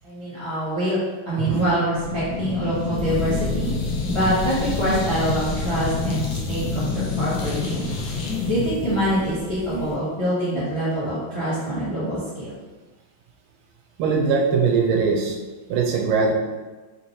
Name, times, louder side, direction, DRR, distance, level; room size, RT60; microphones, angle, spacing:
voice 1, 0.0-1.0 1.2-3.7 4.0-7.9 8.2-12.5, equal, 40° left, -10 dB, 0.4 m, -25 dB
voice 2, 1.4-1.7 14.0-15.4 15.7-16.3, right 5 dB, 80° right, 1 dB, 1.4 m, -21 dB
sound 1, 1.9-9.9, left 4 dB, 75° left, 0.8 m, -27 dB
3.7 x 2.9 x 2.7 m, 1.3 s
omnidirectional pair, 2.3 m